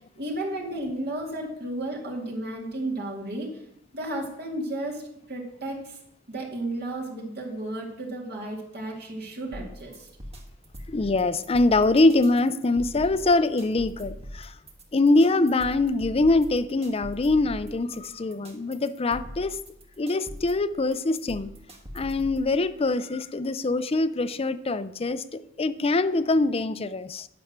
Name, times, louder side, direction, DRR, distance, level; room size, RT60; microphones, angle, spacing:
voice 1, 0.2-3.5 3.9-5.0 5.3-6.0 6.3-10.1, right 1 dB, 55° right, -1 dB, 2.3 m, -33 dB
sound 1, 9.5-22.5, equal, 30° right, 1.6 m, -42 dB
voice 2, 10.9-14.5 14.9-19.6 20.0-21.5 21.9-27.3, left 2 dB, 30° left, 14 dB, 0.5 m, -23 dB
10.0 x 6.2 x 6.7 m, 0.80 s
head